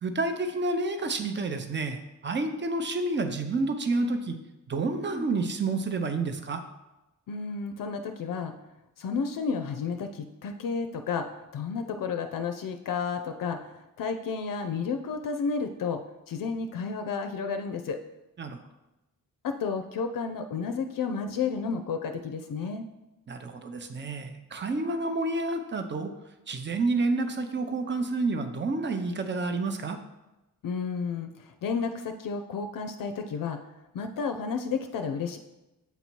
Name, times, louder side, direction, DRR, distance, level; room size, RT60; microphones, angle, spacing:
voice 1, 0.0-4.4 4.7-6.6 18.4-18.6 23.3-26.1 26.5-30.0, right 3 dB, 35° right, 7 dB, 0.6 m, -29 dB
voice 2, 7.3-8.5 9.0-18.0 19.4-22.9 30.6-33.6 33.9-35.4, left 5 dB, 70° left, 6 dB, 0.5 m, -32 dB
8.0 x 2.7 x 4.5 m, 0.99 s
cardioid pair, 90°, 34 cm